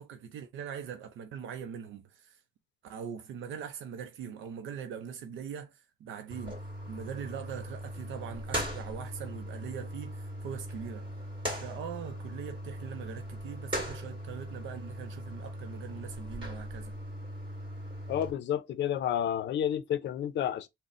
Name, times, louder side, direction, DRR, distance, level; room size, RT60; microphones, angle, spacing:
voice 1, 0.0-2.4 2.8-11.1 11.6-16.9, right 8 dB, 75° right, 0.5 m, -42 dB
sound 1, 6.3-18.3, equal, 25° right, 1.9 m, -39 dB
voice 2, 18.1-20.7, left 10 dB, 65° left, 0.5 m, -30 dB
4.0 x 2.1 x 3.6 m
cardioid pair, 90°, 20 cm